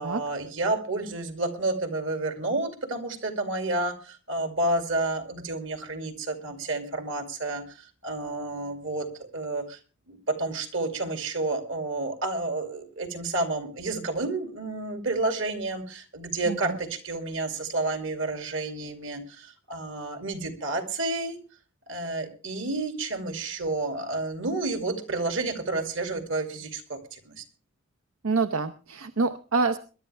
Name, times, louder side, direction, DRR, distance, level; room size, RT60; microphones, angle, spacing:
voice 1, 0.0-9.8 10.1-21.4 21.9-27.4, right 2 dB, 60° right, 6 dB, 2.5 m, -30 dB
voice 2, 16.5-16.8 28.2-29.8, right 4 dB, 80° right, 11 dB, 0.7 m, -26 dB
22.0 x 11.5 x 3.4 m, 0.35 s
head